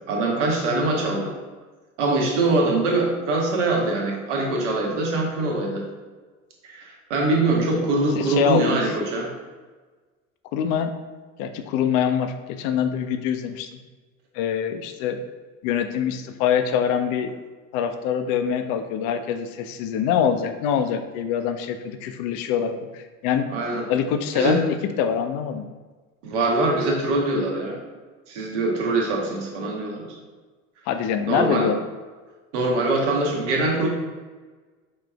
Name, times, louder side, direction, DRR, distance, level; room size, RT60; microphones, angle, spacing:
voice 1, 0.1-1.3 2.0-5.9 6.6-9.3 23.5-23.9 24.3-24.6 26.2-27.8 28.3-30.1 31.3-31.7 32.5-33.9, right 2 dB, 60° right, 0 dB, 1.0 m, -23 dB
voice 2, 8.2-8.8 10.5-10.9 11.4-13.7 14.3-15.2 15.6-17.3 17.7-23.5 23.9-25.6 30.9-31.8, left 8 dB, 40° left, 7 dB, 0.4 m, -24 dB
5.1 x 3.1 x 2.4 m, 1.3 s
figure-of-eight pair, 65°, 40 cm